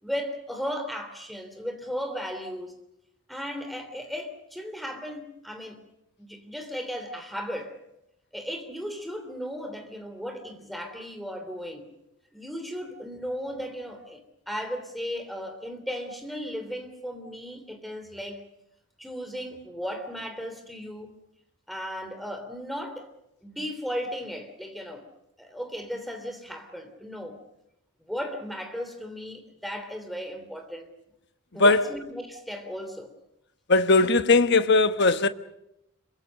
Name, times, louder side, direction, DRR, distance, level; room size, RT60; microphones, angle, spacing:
voice 1, 0.0-2.7 3.3-5.8 6.2-7.8 8.3-11.9 12.3-18.4 19.0-21.1 21.7-23.1 23.4-25.1 25.4-27.4 28.0-30.9 31.5-33.1, equal, ahead, 3.1 m, -36 dB
voice 2, 33.7-35.3, left 3 dB, 50° left, 1.1 m, -19 dB
26.5 x 24.0 x 6.4 m
head